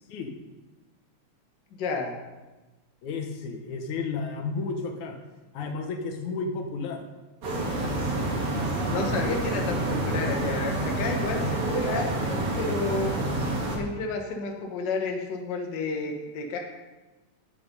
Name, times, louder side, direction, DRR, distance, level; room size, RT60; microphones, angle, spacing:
voice 1, 1.7-2.1 8.9-13.1 13.7-16.6, left 3 dB, 50° left, 2 dB, 1.6 m, -31 dB
voice 2, 3.0-5.2 5.5-7.0 11.4-11.6, left 4 dB, 85° left, 4 dB, 2.5 m, -32 dB
sound 1, 7.4-13.8, right 2 dB, 50° right, 3.2 m, -28 dB
9.4 x 8.8 x 5.4 m, 1.1 s
omnidirectional pair, 3.3 m